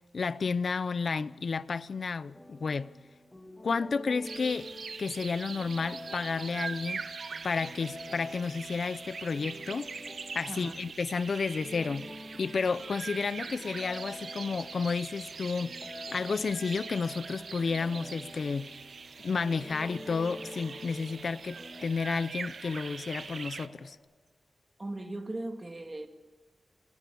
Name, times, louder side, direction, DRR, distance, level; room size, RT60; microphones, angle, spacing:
voice 1, 0.1-2.9 3.6-4.7 5.0-7.0 7.4-9.9 10.3-12.1 12.4-18.7 19.2-24.0, left 5 dB, 50° left, 0.8 m, -31 dB
sound 1, 2.3-21.9, left 1 dB, 15° left, 3.3 m, -48 dB
sound 2, 4.2-23.7, right 5 dB, 60° right, 1.2 m, -43 dB
sound 3, 13.1-23.9, right 2 dB, 40° right, 6.2 m, -58 dB
voice 2, 24.8-26.1, right 2 dB, 20° right, 2.3 m, -38 dB
28.5 x 27.0 x 7.1 m
wide cardioid pair, 165°, 0 cm